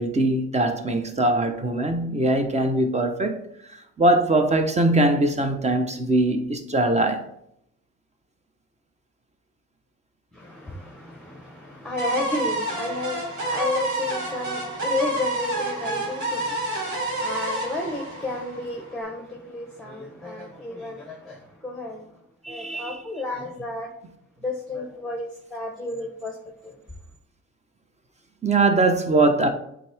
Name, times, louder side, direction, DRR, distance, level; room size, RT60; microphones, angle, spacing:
voice 1, 0.0-7.3 22.4-23.0 28.4-29.5, right 2 dB, 20° right, 1.0 m, -22 dB
voice 2, 10.3-22.1 22.5-23.9 24.4-26.4 26.6-26.8, left 2 dB, ahead, 1.1 m, -32 dB
sound 1, 12.0-18.9, right 2 dB, 75° right, 2.0 m, -29 dB
7.6 x 3.8 x 3.5 m
cardioid pair, 90°, 30 cm